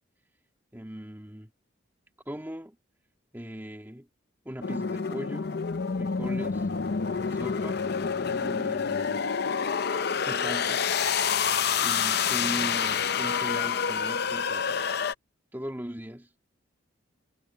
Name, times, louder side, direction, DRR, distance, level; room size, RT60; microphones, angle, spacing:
voice 1, 0.7-1.5 2.3-2.8 3.3-4.1 4.5-5.5 5.9-6.7 7.3-7.8 8.2-9.2 10.2-10.8 11.8-14.8 15.5-16.3, equal, 10° right, 2.1 m, -39 dB
sound 1, 4.6-15.1, left 6 dB, 50° left, 0.6 m, -28 dB
head